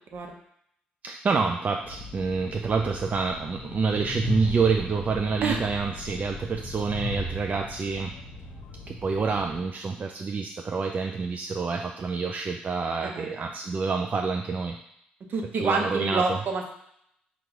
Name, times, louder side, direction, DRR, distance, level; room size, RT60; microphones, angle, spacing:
voice 1, 1.0-8.1 8.9-14.8 15.6-16.4, right 4 dB, 40° right, 2 dB, 0.4 m, -27 dB
Train, 1.8-9.6, left 2 dB, 65° left, 0.7 m, -38 dB
voice 2, 15.3-16.7, right 4 dB, 60° right, 2 dB, 0.8 m, -27 dB
3.9 x 2.4 x 4.4 m, 0.72 s
supercardioid pair, 55°, 4 cm